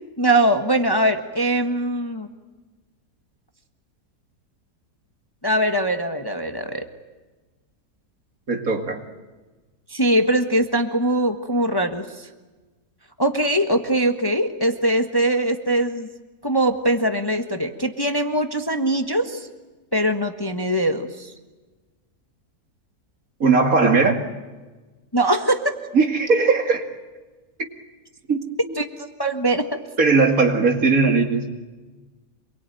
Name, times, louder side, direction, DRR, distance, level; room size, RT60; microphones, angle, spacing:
voice 1, 0.2-2.3 5.4-6.9 9.9-12.3 13.2-16.1 16.4-19.5 19.9-21.3 25.1-25.6 28.8-29.8, right 1 dB, 15° left, 5 dB, 1.4 m, -22 dB
voice 2, 8.5-9.0 23.4-24.2 25.9-26.8 27.6-27.7 28.3-28.4 30.0-31.5, right 4 dB, 60° right, 4 dB, 2.8 m, -18 dB
27.0 x 22.5 x 9.2 m, 1.2 s
omnidirectional pair, 1.7 m